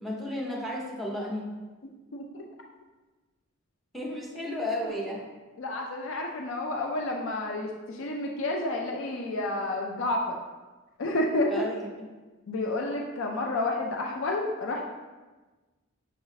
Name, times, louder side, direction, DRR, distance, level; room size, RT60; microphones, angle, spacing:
voice 1, 0.0-1.5 3.9-5.2 11.5-11.9, left 1 dB, ahead, -3 dB, 0.7 m, -33 dB
voice 2, 1.8-2.4 4.8-4.9 5.6-10.4 11.0-11.6 12.5-14.8, left 2 dB, 70° left, 1 dB, 0.4 m, -30 dB
5.8 x 3.0 x 2.7 m, 1.2 s
head